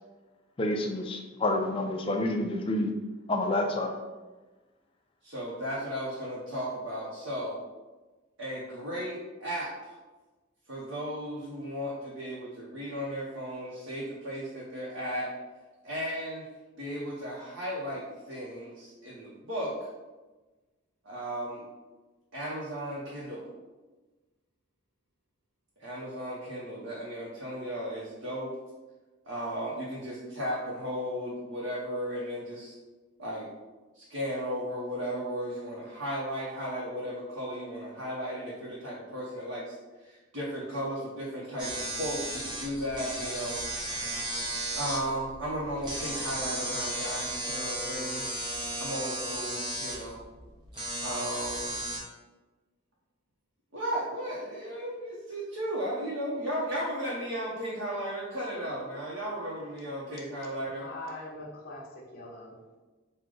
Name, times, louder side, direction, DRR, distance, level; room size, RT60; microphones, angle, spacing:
voice 1, 0.6-2.9 3.3-3.9, left 1 dB, 25° left, 3 dB, 0.3 m, -28 dB
voice 2, 5.2-7.6 8.4-10.0 10.7-15.3 15.8-16.4 16.8-19.9 21.0-21.6 22.3-23.5 25.8-28.5 29.2-32.7 33.2-33.5 33.9-43.6 44.7-48.3 48.8-50.2 51.0-51.7 53.7-60.9, equal, 70° right, -6 dB, 0.8 m, -35 dB
sound 1, 41.6-52.0, right 1 dB, 20° right, 0.6 m, -35 dB
voice 3, 60.7-62.8, left 1 dB, 45° left, -4 dB, 0.8 m, -42 dB
4.9 x 2.2 x 3.7 m, 1.2 s
head